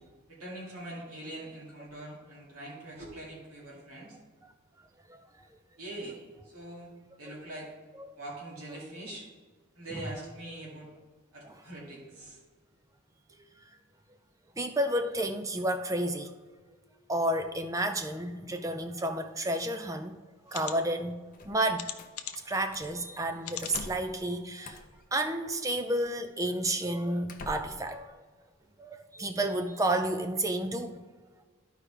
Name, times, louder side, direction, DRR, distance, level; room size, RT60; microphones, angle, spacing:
voice 1, 0.3-4.2 5.8-6.2 6.4-6.9 7.2-7.7 8.2-9.3 9.7-10.9 11.3-12.4 13.3-13.4, right 1 dB, 80° right, -5 dB, 2.4 m, -43 dB
voice 2, 14.6-16.3 17.1-20.2 20.5-21.9 22.5-24.8 25.1-28.2 28.8-31.0, right 1 dB, 15° right, 7 dB, 0.4 m, -31 dB
sound 1, 20.5-20.8 21.8-22.5 23.4-23.9 24.5-24.6 24.9-25.0, left 10 dB, 85° left, 0.7 m, -39 dB
sound 2, 21.3-22.1 22.7-23.0 23.6-24.2 24.6-25.0 25.9-26.1 26.7-26.8 27.3-27.9, left 2 dB, 40° left, 0.6 m, -45 dB
13.0 x 4.9 x 3.3 m, 1.5 s
head